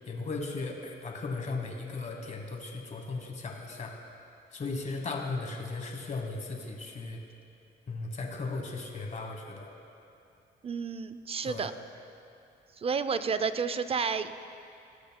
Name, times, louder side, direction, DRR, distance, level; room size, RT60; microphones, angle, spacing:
voice 1, 0.0-3.9 4.5-7.2 7.9-9.7 11.4-11.7, left 3 dB, 35° left, 2 dB, 1.2 m, -36 dB
voice 2, 10.6-11.7 12.8-14.3, right 5 dB, 30° right, 12 dB, 0.4 m, -31 dB
17.5 x 6.5 x 2.2 m, 2.7 s
cardioid pair, 90°, 20 cm